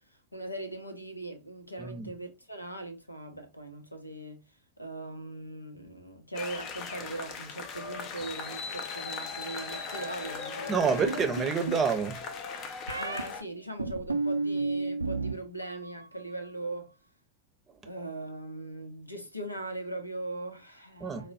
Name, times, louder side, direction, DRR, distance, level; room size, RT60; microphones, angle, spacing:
voice 1, 0.3-4.4 4.8-11.2 13.0-16.9 17.8-21.3, right 2 dB, 85° left, 0.6 m, -40 dB
sound 1, 6.3-13.4, left 5 dB, 35° left, 0.5 m, -38 dB
voice 2, 10.7-12.2 21.0-21.3, right 5 dB, 25° right, 0.7 m, -28 dB
sound 2, 11.1-11.9 12.9-13.2 13.8-15.3 15.6-16.2, right 3 dB, 85° right, 0.4 m, -32 dB
4.7 x 2.0 x 2.5 m
figure-of-eight pair, 90°, 0 cm